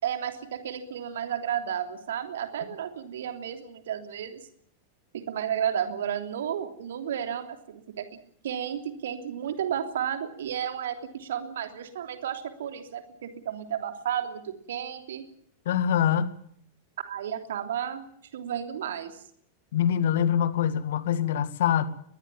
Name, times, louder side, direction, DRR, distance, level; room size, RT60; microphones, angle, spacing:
voice 1, 0.0-4.4 5.1-8.1 8.4-15.2 17.0-18.0 18.3-19.2, right 9 dB, 60° right, 7 dB, 3.2 m, -32 dB
voice 2, 15.7-16.3 19.7-21.8, left 9 dB, 55° left, 13 dB, 1.9 m, -24 dB
21.5 x 21.0 x 7.3 m, 0.64 s
figure-of-eight pair, 90°, 0 cm